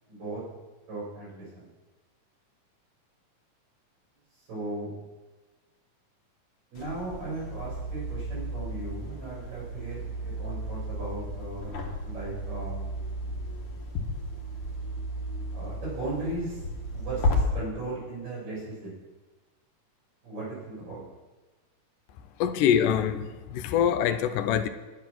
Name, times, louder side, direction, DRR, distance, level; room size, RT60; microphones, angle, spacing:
voice 1, 0.1-0.4 0.9-1.6 4.4-4.9 6.7-12.9 15.5-16.6 16.9-18.9 20.2-21.0, right 2 dB, 85° right, 6.2 m, -37 dB
sound 1, 6.8-17.3, equal, 50° left, 2.1 m, -34 dB
voice 2, 22.4-24.7, left 9 dB, 85° left, 2.2 m, -24 dB
9.9 x 9.6 x 6.0 m
omnidirectional pair, 3.8 m